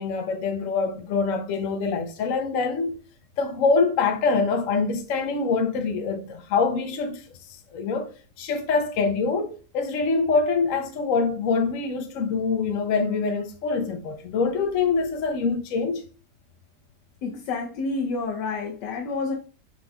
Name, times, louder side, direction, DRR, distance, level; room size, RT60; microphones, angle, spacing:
voice 1, 0.0-3.0 3.4-7.2 7.7-8.1 8.4-16.0, left 4 dB, 65° left, 0.9 m, -25 dB
voice 2, 17.2-19.4, left 3 dB, 90° left, 1.3 m, -29 dB
5.6 x 3.6 x 2.3 m
omnidirectional pair, 1.8 m